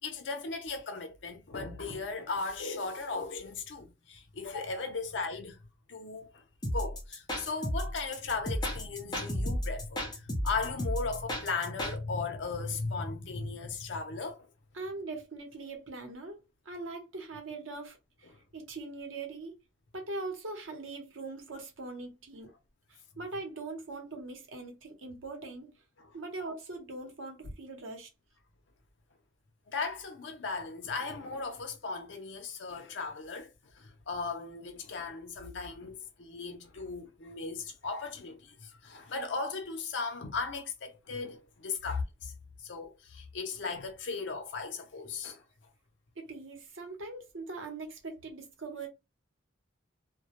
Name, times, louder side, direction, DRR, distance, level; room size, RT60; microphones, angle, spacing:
voice 1, 0.0-5.6 5.9-6.4 6.7-14.5 18.3-18.4 26.0-26.2 29.7-42.3 42.6-45.4, left 4 dB, 65° left, 0.6 m, -37 dB
sound 1, 6.6-12.0, equal, 20° left, 0.5 m, -33 dB
voice 2, 14.7-18.0 18.5-19.6 19.9-22.5 23.2-25.7 26.1-28.1 46.2-48.9, right 3 dB, 85° right, 0.8 m, -41 dB
2.2 x 2.0 x 2.9 m
head